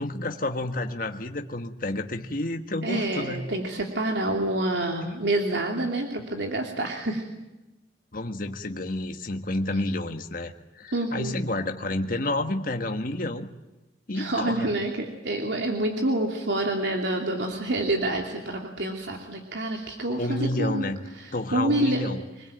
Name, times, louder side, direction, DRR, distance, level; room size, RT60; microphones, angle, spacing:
voice 1, 0.0-3.5 8.1-13.5 14.1-14.7 20.1-21.0 21.3-22.2, left 2 dB, 55° left, 5 dB, 1.6 m, -30 dB
voice 2, 2.8-7.2 10.9-11.4 14.1-20.9 21.2-22.0, right 1 dB, 85° right, 2 dB, 2.9 m, -27 dB
26.5 x 20.5 x 9.1 m, 1.0 s
head